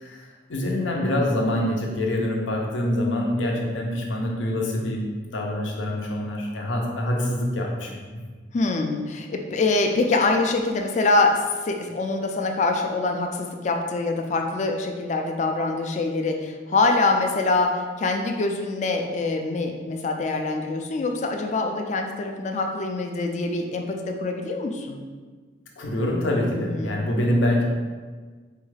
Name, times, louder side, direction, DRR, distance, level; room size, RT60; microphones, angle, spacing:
voice 1, 0.5-5.0 5.3-8.0 25.8-27.6, left 1 dB, 85° left, 0 dB, 0.7 m, -25 dB
voice 2, 8.5-25.0 26.7-27.0, left 3 dB, 40° left, 3 dB, 0.3 m, -24 dB
4.4 x 2.3 x 3.2 m, 1.4 s
head